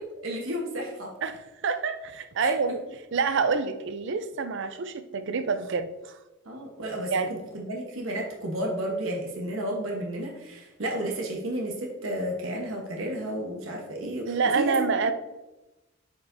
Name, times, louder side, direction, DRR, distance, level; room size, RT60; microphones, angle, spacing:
voice 1, 0.2-1.1 2.4-2.5 6.4-15.0, right 1 dB, 80° right, -1 dB, 1.1 m, -32 dB
voice 2, 1.2-2.8 3.1-6.1 7.1-7.3 14.3-15.1, right 5 dB, 60° right, 10 dB, 0.5 m, -27 dB
8.1 x 5.0 x 2.6 m, 1.0 s
head